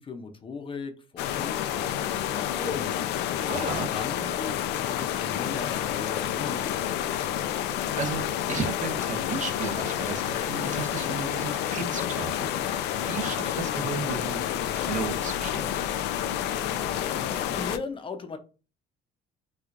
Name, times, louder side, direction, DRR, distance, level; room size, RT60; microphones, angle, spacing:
voice 1, 0.0-2.9 3.4-7.0 12.9-13.3 16.6-18.4, left 4 dB, 30° left, 7 dB, 0.6 m, -38 dB
sound 1, 1.2-17.8, left 10 dB, 85° left, 0.4 m, -29 dB
voice 2, 3.5-3.9 7.9-14.4 14.7-15.8, right 5 dB, 45° right, 7 dB, 0.8 m, -34 dB
4.4 x 2.4 x 2.5 m, 0.33 s
cardioid pair, 110°, 17 cm